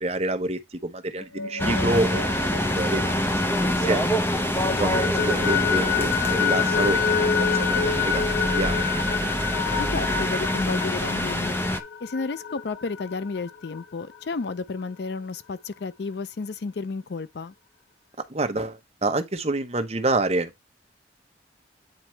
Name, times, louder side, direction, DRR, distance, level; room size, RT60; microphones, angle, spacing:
voice 1, 0.0-2.3 2.7-4.2 4.8-7.3 7.6-8.9 18.3-20.5, right 2 dB, 35° right, 0.9 m, -28 dB
sound 1, 1.2-4.0 4.4-13.8, left 7 dB, 90° left, 0.8 m, -28 dB
sound 2, 1.6-11.8, left 1 dB, 10° left, 0.6 m, -25 dB
voice 2, 9.8-11.5 12.0-17.5, left 4 dB, 65° left, 0.5 m, -32 dB
8.9 x 3.1 x 4.5 m
head